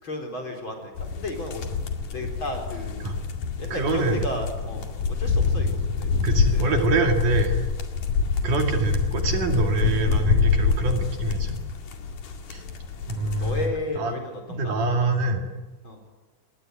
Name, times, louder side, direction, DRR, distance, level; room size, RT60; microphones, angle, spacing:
voice 1, 0.0-1.6 2.1-3.0 3.6-6.1 6.5-6.6 13.2-14.7 15.8-16.0, left 1 dB, 30° left, 3 dB, 4.9 m, -33 dB
sound 1, 1.0-13.7, left 5 dB, 60° left, 3.6 m, -26 dB
voice 2, 3.7-4.3 5.2-5.4 6.2-7.6 8.4-11.6 12.5-12.6 13.1-14.2 14.5-15.4, right 3 dB, 60° right, 4 dB, 3.7 m, -25 dB
27.5 x 21.0 x 9.6 m, 1.2 s
omnidirectional pair, 4.4 m